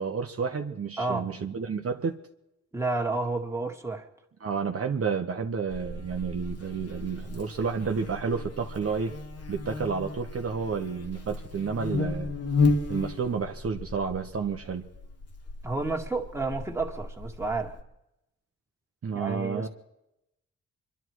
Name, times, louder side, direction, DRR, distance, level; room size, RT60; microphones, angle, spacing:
voice 1, 0.0-2.2 4.4-9.1 9.5-12.3 12.9-14.9 19.0-19.7, right 5 dB, 50° right, 3 dB, 1.1 m, -30 dB
voice 2, 1.0-1.4 2.7-4.1 15.6-17.8 19.1-19.7, right 3 dB, 10° right, 1 dB, 2.0 m, -30 dB
Buzz, 5.7-17.8, left 3 dB, 55° left, 1.8 m, -33 dB
25.5 x 11.5 x 4.7 m, 0.86 s
cardioid pair, 95°, 29 cm